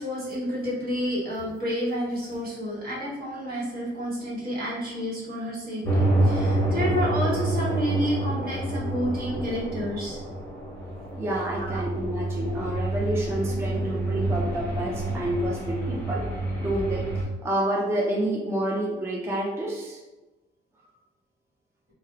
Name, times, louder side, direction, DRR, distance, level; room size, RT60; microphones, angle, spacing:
voice 1, 0.0-10.2 11.6-11.9, equal, 50° right, -7 dB, 1.1 m, -30 dB
sound 1, 5.8-17.2, right 1 dB, 10° left, 0.9 m, -28 dB
voice 2, 11.1-16.3 16.6-17.1 17.4-20.0, right 1 dB, 15° right, -2 dB, 0.4 m, -28 dB
2.4 x 2.0 x 2.7 m, 1.1 s
cardioid pair, 90°, 20 cm